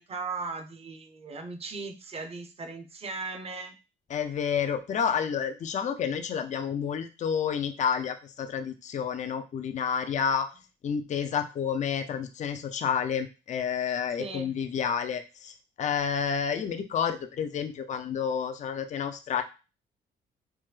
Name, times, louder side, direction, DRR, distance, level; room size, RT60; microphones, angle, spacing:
voice 1, 0.0-3.7 14.2-14.5, right 3 dB, 30° right, 6 dB, 0.6 m, -37 dB
voice 2, 4.1-10.5 10.8-19.4, left 7 dB, 35° left, 8 dB, 0.4 m, -30 dB
3.3 x 2.1 x 3.1 m, 0.30 s
cardioid pair, 90°, 20 cm